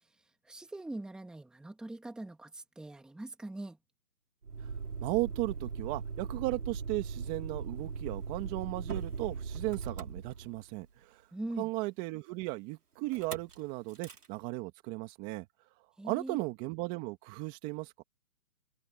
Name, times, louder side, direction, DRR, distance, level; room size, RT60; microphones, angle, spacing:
voice 1, 0.4-3.8 11.3-11.7 16.0-16.4, right 2 dB, ahead, 2.0 m, -42 dB
Motor vehicle (road), 4.4-10.9 13.1-13.5 13.9-14.3, right 5 dB, 90° right, 4.8 m, -39 dB
voice 2, 5.0-11.2 11.6-15.4 16.0-18.0, right 22 dB, 20° right, 2.0 m, -36 dB
hypercardioid pair, 155°, 45 cm